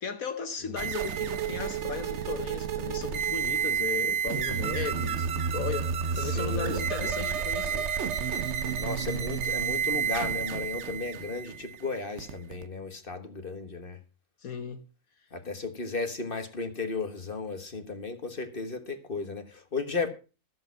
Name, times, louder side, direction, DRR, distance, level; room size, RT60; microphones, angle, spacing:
voice 1, 0.0-7.9 14.4-14.8, left 6 dB, 70° left, 1.5 m, -36 dB
sound 1, 0.8-12.7, right 7 dB, 55° right, 1.0 m, -30 dB
voice 2, 6.2-6.8 8.8-14.0 15.3-20.1, left 4 dB, 40° left, 1.5 m, -34 dB
13.5 x 7.8 x 5.7 m
omnidirectional pair, 1.5 m